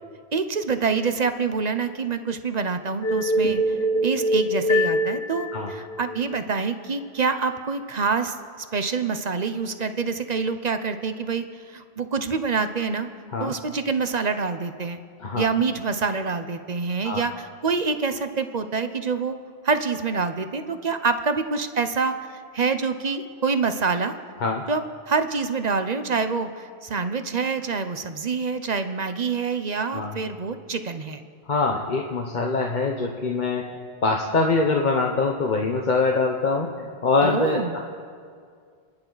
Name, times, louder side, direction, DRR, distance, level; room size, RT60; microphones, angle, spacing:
voice 1, 0.3-8.3 8.7-13.1 13.4-15.0 15.4-19.3 19.6-22.2 22.5-24.1 24.7-31.2 37.2-37.8, right 4 dB, 45° right, 9 dB, 0.8 m, -26 dB
sound 1, 3.0-6.4, equal, 25° left, 3.6 m, -24 dB
voice 2, 31.5-33.7 34.0-37.8, left 3 dB, 50° left, 1 dB, 1.1 m, -24 dB
29.5 x 10.5 x 4.0 m, 2.1 s
omnidirectional pair, 1.1 m